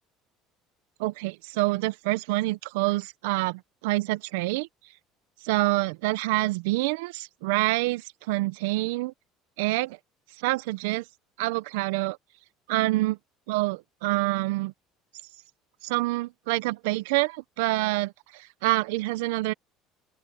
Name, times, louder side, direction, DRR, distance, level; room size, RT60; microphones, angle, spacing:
voice 1, 1.0-4.7 5.4-9.1 9.6-10.0 10.4-11.0 11.4-12.2 12.7-13.2 13.5-14.7 15.8-19.5, right 21 dB, 80° right, 0.8 m, -27 dB
open air
hypercardioid pair, 75°, 0 cm